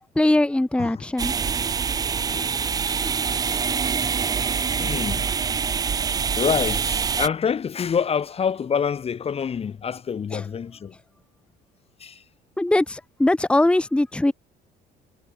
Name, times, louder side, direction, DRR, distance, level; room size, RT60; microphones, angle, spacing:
voice 1, 0.1-1.3 3.0-3.2 10.3-10.5 12.6-14.3, left 1 dB, 5° left, 1.1 m, -21 dB
sound 1, 1.2-7.3, right 6 dB, 20° right, 0.3 m, -25 dB
voice 2, 4.8-5.2 6.4-10.9 12.0-12.2, left 7 dB, 35° left, 1.3 m, -26 dB
cardioid pair, 110°, 17 cm